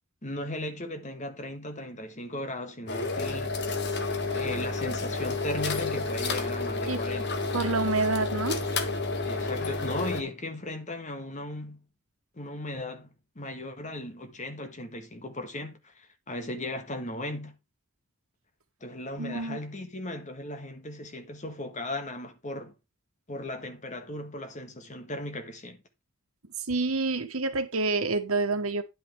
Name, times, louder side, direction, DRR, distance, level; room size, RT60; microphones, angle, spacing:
voice 1, 0.2-3.6 4.3-7.3 9.2-11.8 12.3-17.6 18.8-22.7 23.3-25.8, left 1 dB, 35° left, 1.6 m, -37 dB
sound 1, 2.9-10.2, left 3 dB, 50° left, 1.5 m, -30 dB
voice 2, 7.5-8.6 19.2-19.6 26.7-28.8, right 3 dB, 80° right, 1.4 m, -27 dB
10.0 x 8.6 x 3.5 m
head